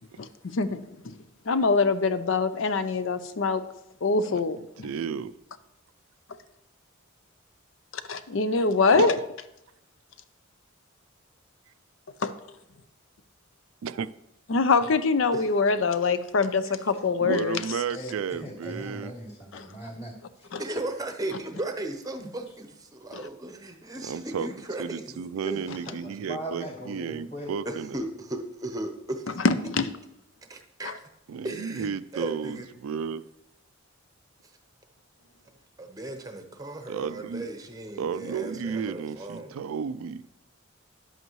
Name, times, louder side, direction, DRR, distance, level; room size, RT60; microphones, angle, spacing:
voice 1, 0.2-1.2 1.5-3.6 4.0-4.9 8.1-9.2 12.2-12.3 14.5-17.6 19.5-19.7 20.5-20.6 23.1-23.2 29.4-29.9 30.8-30.9, left 4 dB, 65° left, 0.5 m, -24 dB
voice 2, 4.8-5.3 8.9-9.1 13.8-14.1 17.2-19.1 24.1-24.5 24.8-28.0 31.3-33.2 36.9-37.5 38.0-40.2, right 6 dB, 85° right, 0.4 m, -33 dB
voice 3, 17.9-20.5 22.2-22.3 24.4-24.5 25.4-27.5, right 1 dB, 30° left, 2.4 m, -39 dB
voice 4, 20.6-25.2 26.0-26.1 27.6-29.4 30.5-31.0 31.4-32.6 35.8-39.6, right 2 dB, 15° right, 0.8 m, -36 dB
10.5 x 8.0 x 3.1 m
head